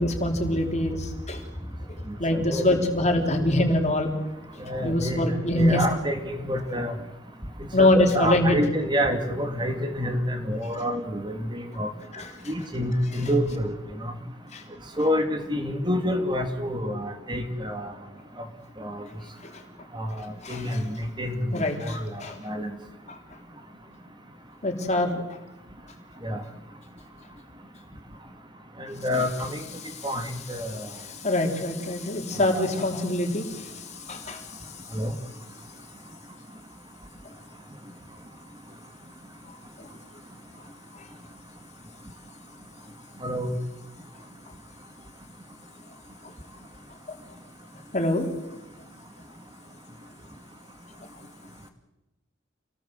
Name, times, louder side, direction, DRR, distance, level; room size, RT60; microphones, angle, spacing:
voice 1, 0.0-1.4 2.2-4.1 4.8-5.8 7.7-8.6 12.1-12.3 14.5-14.6 19.4-19.6 20.2-20.8 21.5-22.4 23.1-23.2 24.6-25.4 29.8-30.1 30.7-34.6 39.8-39.9 40.9-41.0 47.1-47.2 47.9-48.3, left 1 dB, 35° left, 3 dB, 3.7 m, -25 dB
voice 2, 2.3-2.6 4.6-5.2 5.5-6.9 7.8-11.9 12.5-14.1 15.0-17.9 18.8-19.0 19.9-20.1 20.5-22.7 26.2-26.4 28.8-29.6 30.0-30.9 32.5-32.7 34.9-35.1 43.2-43.6, equal, 25° right, 6 dB, 2.3 m, -28 dB
27.5 x 18.5 x 7.9 m, 0.99 s
head